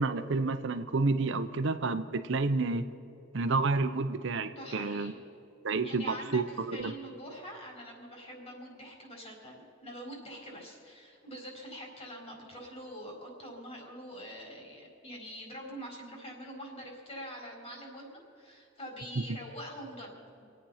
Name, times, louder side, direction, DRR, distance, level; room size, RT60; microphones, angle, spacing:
voice 1, 0.0-2.9 3.3-5.1 5.6-6.9 19.2-19.3, right 3 dB, 65° right, 9 dB, 0.7 m, -30 dB
voice 2, 4.5-5.2 5.8-6.4 6.7-20.4, equal, 35° left, -1 dB, 4.4 m, -45 dB
26.5 x 9.0 x 5.7 m, 2.8 s
head